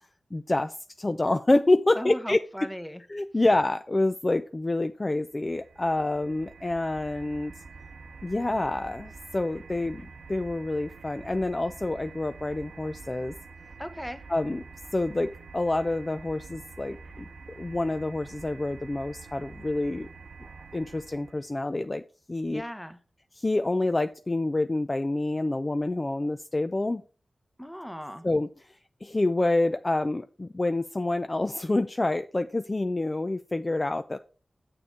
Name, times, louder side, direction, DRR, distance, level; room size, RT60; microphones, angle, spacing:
voice 1, 0.3-2.4 3.1-7.5 8.2-10.0 10.3-13.3 14.3-14.6 14.9-17.3 17.6-20.1 20.7-22.0 22.3-22.6 23.4-27.0 28.2-28.8 29.0-34.2, left 2 dB, 30° left, 0.4 m, -27 dB
voice 2, 1.9-3.0 13.8-14.3 22.5-23.0 27.6-28.3, equal, 5° left, 0.9 m, -37 dB
sound 1, 5.3-21.5, right 4 dB, 80° right, 0.8 m, -47 dB
7.3 x 6.8 x 4.6 m
wide cardioid pair, 70°, 0 cm